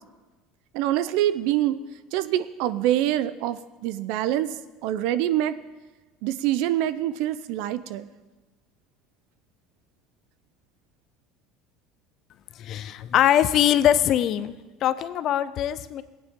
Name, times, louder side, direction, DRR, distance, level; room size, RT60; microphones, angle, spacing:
voice 1, 0.7-1.8 2.1-5.6 6.2-8.1, right 13 dB, 70° right, 14 dB, 0.5 m, -25 dB
voice 2, 12.6-14.5 14.8-16.0, left 11 dB, 50° left, 15 dB, 0.5 m, -22 dB
16.0 x 8.9 x 3.7 m, 1.2 s
supercardioid pair, 110°, 0 cm